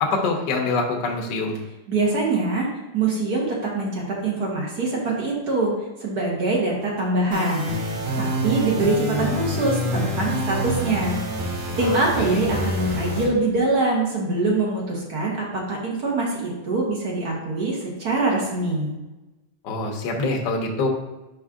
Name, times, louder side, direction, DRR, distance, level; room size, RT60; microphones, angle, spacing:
voice 1, 0.0-1.6 12.3-12.4 19.6-20.9, left 3 dB, 70° left, 1 dB, 1.0 m, -24 dB
voice 2, 1.9-2.7 2.9-5.7 6.0-7.9 8.2-11.2 11.8-18.9, right 2 dB, 45° right, -3 dB, 1.3 m, -24 dB
sound 1, 7.3-13.3, equal, 65° right, 3.0 m, -27 dB
6.4 x 5.3 x 3.7 m, 1.1 s
omnidirectional pair, 3.4 m